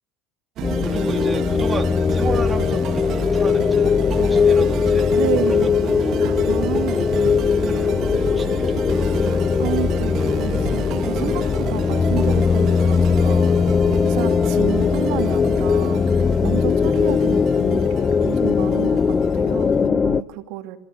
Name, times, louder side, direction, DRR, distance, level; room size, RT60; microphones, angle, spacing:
sound 1, 0.6-20.2, left 6 dB, 30° left, 0.7 m, -19 dB
sound 2, 0.6-19.9, right 10 dB, 55° right, 1.8 m, -32 dB
voice 1, 0.8-5.2 5.4-7.4 7.6-9.4, right 3 dB, 15° right, 4 dB, 3.3 m, -33 dB
voice 2, 5.2-5.7 6.2-7.0 9.3-13.5 13.9-20.8, right 14 dB, 70° right, 6 dB, 2.7 m, -30 dB
27.0 x 15.5 x 8.6 m, 0.84 s
supercardioid pair, 110°, 0 cm